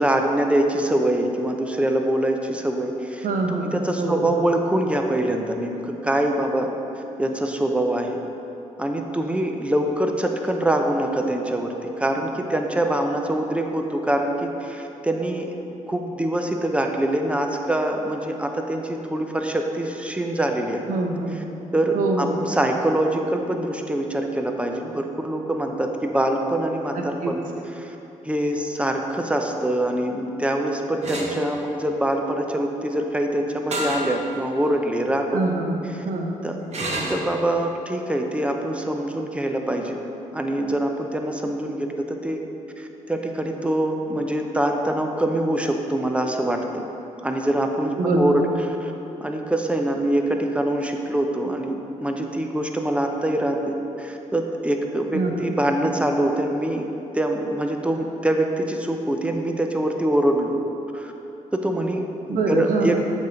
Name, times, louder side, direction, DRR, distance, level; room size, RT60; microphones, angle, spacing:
voice 1, 0.0-6.7 7.2-8.2 8.8-15.5 15.9-20.8 21.7-27.4 27.8-28.0 28.2-35.4 36.4-36.6 37.1-40.0 40.3-42.4 42.8-46.8 47.2-48.9 49.2-56.8 57.1-60.5 60.9-61.1 61.5-63.0, right 1 dB, 10° right, 3 dB, 0.6 m, -24 dB
voice 2, 3.2-4.3 20.9-21.4 21.9-22.4 26.9-27.3 35.3-35.8 36.0-36.4 48.0-48.5 55.1-55.5 62.3-62.9, right 2 dB, 75° right, 2 dB, 0.7 m, -25 dB
sound 1, 31.0-31.3 33.7-34.1 34.6-34.7 36.7-37.2, right 1 dB, 55° right, 1.0 m, -27 dB
8.0 x 3.5 x 3.9 m, 3.0 s
cardioid pair, 70°, 14 cm